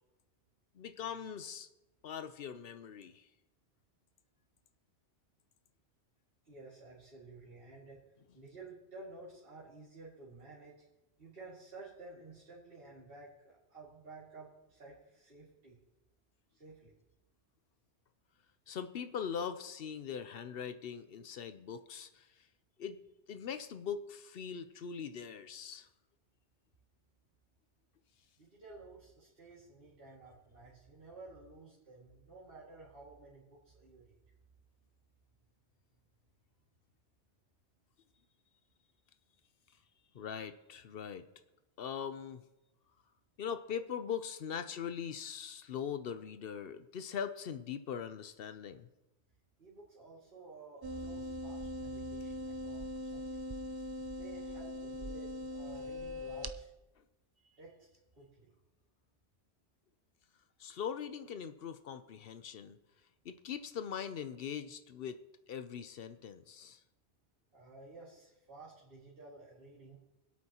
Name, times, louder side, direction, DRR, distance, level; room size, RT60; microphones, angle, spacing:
voice 1, 0.7-1.7 2.0-3.3 18.7-22.5 22.8-23.0 23.3-25.9 40.1-41.2 41.8-42.4 43.4-48.9 60.6-62.8 63.2-65.2 65.5-66.8, left 7 dB, 65° left, 10 dB, 0.8 m, -41 dB
voice 2, 6.5-8.0 8.3-10.7 11.2-15.8 16.5-16.9 28.4-34.1 49.6-53.6 54.2-56.7 57.4-58.5 67.5-70.0, right 3 dB, 55° right, -8 dB, 2.4 m, -53 dB
sound 1, 50.8-56.5, equal, 35° right, 0.4 m, -41 dB
25.0 x 8.4 x 2.9 m, 0.98 s
omnidirectional pair, 1.1 m